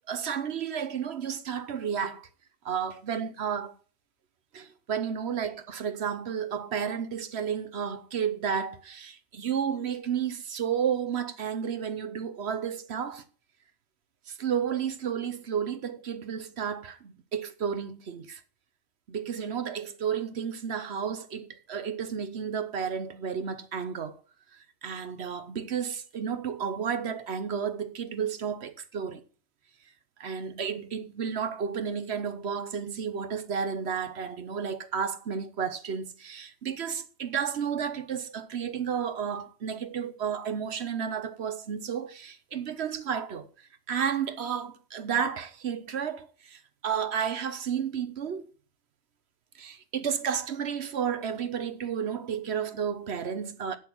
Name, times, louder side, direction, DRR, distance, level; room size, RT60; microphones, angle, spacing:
voice 1, 0.1-2.3 2.6-3.8 4.5-13.2 14.3-18.4 19.1-24.2 24.5-29.2 30.2-48.4 49.5-53.8, right 7 dB, 60° right, 1.1 m, -32 dB
8.1 x 7.7 x 6.0 m
omnidirectional pair, 1.2 m